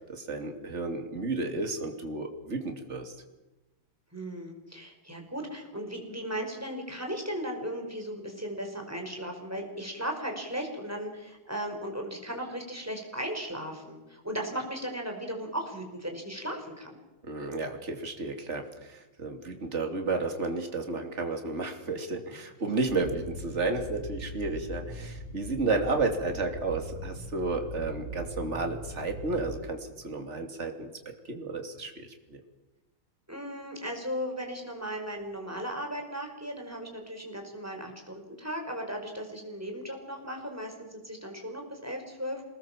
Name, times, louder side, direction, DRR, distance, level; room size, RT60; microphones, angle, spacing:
voice 1, 0.0-3.1 17.2-32.4, right 3 dB, 30° right, 5 dB, 3.1 m, -32 dB
voice 2, 4.1-16.9 33.3-42.4, equal, 5° right, 2 dB, 5.3 m, -36 dB
sound 1, 22.9-29.6, equal, 55° left, 4.8 m, -40 dB
27.0 x 20.5 x 7.5 m, 1.1 s
omnidirectional pair, 2.3 m